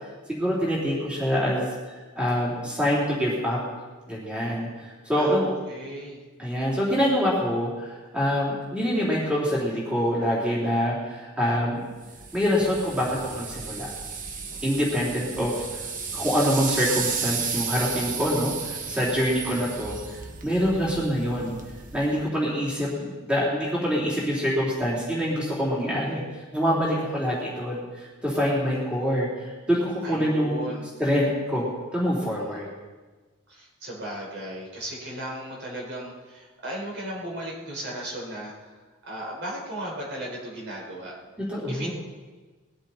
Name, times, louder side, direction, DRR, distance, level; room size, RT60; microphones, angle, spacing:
voice 1, 0.3-1.7 2.2-3.6 4.1-5.5 6.4-11.8 12.3-13.9 14.6-15.6 16.1-20.0 20.4-21.5 21.9-26.2 26.5-30.7 31.0-31.7 31.9-32.7 41.4-41.9, equal, 5° right, -6 dB, 3.7 m, -25 dB
voice 2, 5.1-6.3 15.0-15.2 28.4-29.0 30.0-30.9 33.5-38.8 39.0-41.2 41.7-41.9, right 1 dB, 50° right, -3 dB, 5.2 m, -36 dB
sound 1, 12.0-22.3, right 5 dB, 35° right, 1.1 m, -34 dB
21.0 x 14.0 x 4.4 m, 1.3 s
head